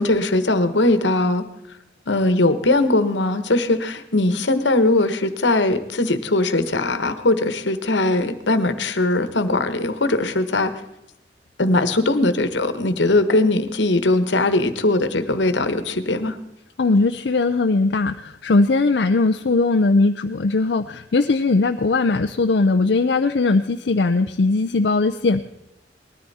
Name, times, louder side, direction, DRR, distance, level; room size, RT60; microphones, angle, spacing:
voice 1, 0.0-1.4 2.1-10.7 11.6-16.3, left 2 dB, 80° left, 11 dB, 1.3 m, -20 dB
voice 2, 16.8-25.4, left 3 dB, 65° left, 6 dB, 0.5 m, -19 dB
19.5 x 13.5 x 4.2 m, 0.84 s
head